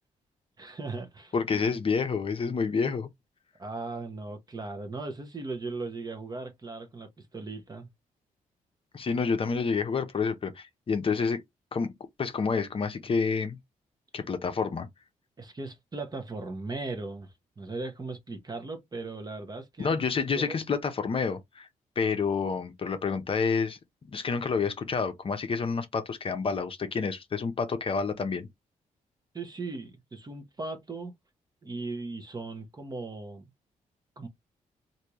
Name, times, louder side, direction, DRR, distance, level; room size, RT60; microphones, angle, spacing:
voice 1, 0.6-1.8 3.6-7.9 15.4-20.0 20.3-20.6 29.3-31.1 31.6-33.4 34.2-34.3, right 3 dB, 30° right, 0.9 m, -38 dB
voice 2, 1.3-3.1 8.9-11.4 11.7-11.9 12.2-13.6 14.1-14.9 19.8-21.7 22.0-23.8 24.1-28.5, left 5 dB, 40° left, 0.7 m, -28 dB
3.3 x 2.6 x 2.9 m
cardioid pair, 80°, 14 cm